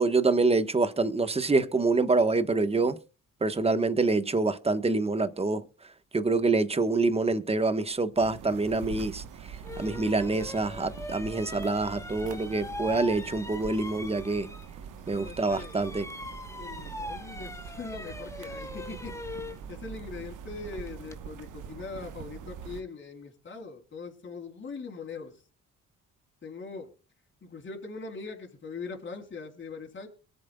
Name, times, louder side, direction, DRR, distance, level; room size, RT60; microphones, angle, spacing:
voice 1, 0.0-3.0 3.4-5.6 6.1-14.5 15.1-16.1, right 3 dB, 20° right, 1.2 m, -26 dB
sound 1, 8.2-22.8, right 7 dB, 80° right, 1.1 m, -44 dB
sound 2, 9.6-14.8 15.1-21.2, left 1 dB, 10° left, 1.0 m, -42 dB
voice 2, 15.0-16.0 16.6-25.4 26.4-26.9 27.4-30.1, left 4 dB, 40° left, 3.6 m, -41 dB
23.0 x 7.9 x 2.3 m
cardioid pair, 80°, 31 cm